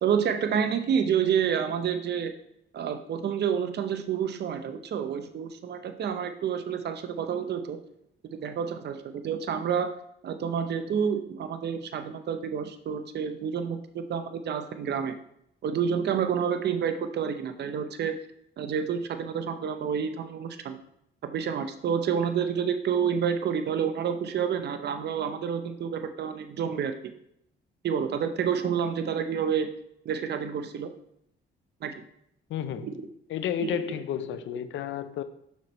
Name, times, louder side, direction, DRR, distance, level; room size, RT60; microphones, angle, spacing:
voice 1, 0.0-2.3 2.7-7.8 8.4-9.9 10.2-15.1 15.6-18.1 18.6-20.8 21.2-27.1 27.8-29.7 30.0-30.9 31.8-31.9 32.8-32.9 33.6-33.8, right 7 dB, 60° right, 0.7 m, -29 dB
voice 2, 32.5-32.9 33.3-35.2, left 10 dB, 75° left, 0.6 m, -32 dB
7.1 x 5.9 x 3.1 m
cardioid pair, 90°, 20 cm